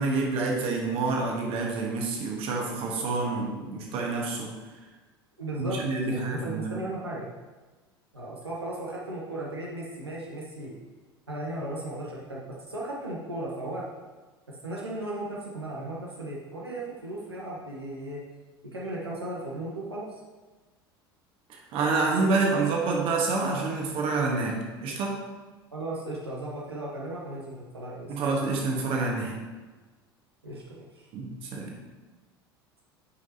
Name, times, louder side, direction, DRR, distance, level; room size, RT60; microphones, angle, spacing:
voice 1, 0.0-4.5 5.6-6.8 21.7-25.2 28.1-29.3 31.1-31.7, right 3 dB, 45° right, 0 dB, 1.4 m, -28 dB
voice 2, 5.4-7.3 8.1-10.8 11.3-13.9 14.6-18.2 18.7-20.2 25.7-28.3 30.4-31.1, right 1 dB, 85° right, -5 dB, 1.1 m, -36 dB
9.6 x 5.2 x 2.8 m, 1.3 s
figure-of-eight pair, 70°, 13 cm